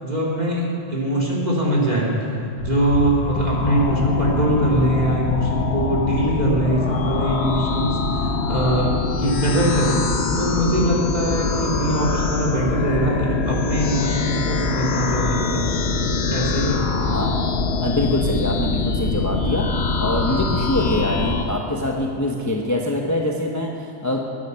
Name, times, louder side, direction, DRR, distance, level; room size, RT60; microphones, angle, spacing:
voice 1, 0.0-10.0 10.4-15.7 16.3-16.8 20.3-20.5, right 1 dB, 35° right, -4 dB, 3.6 m, -22 dB
sound 1, 2.6-21.4, left 4 dB, 60° left, 1.4 m, -23 dB
voice 2, 3.3-3.7 17.1-17.4 17.8-19.7 20.0-24.2, left 1 dB, 15° left, -1 dB, 1.0 m, -24 dB
21.5 x 9.8 x 5.8 m, 2.6 s
omnidirectional pair, 1.3 m